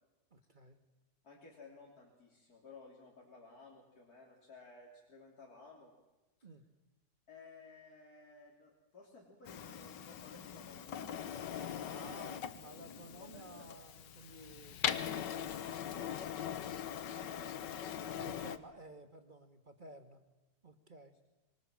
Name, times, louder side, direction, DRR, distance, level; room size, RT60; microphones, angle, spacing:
voice 1, 0.3-0.8 6.4-6.6 11.8-15.8 18.1-20.2 20.6-21.1, right 2 dB, 30° right, 8 dB, 1.7 m, -54 dB
voice 2, 1.2-5.9 7.3-11.5 11.9-12.2 13.3-13.5 17.1-17.8, left 3 dB, 55° left, -2 dB, 3.7 m, -56 dB
Printer, 9.5-18.6, left 9 dB, 75° left, 1.7 m, -41 dB
25.0 x 23.5 x 7.7 m, 1.1 s
omnidirectional pair, 1.9 m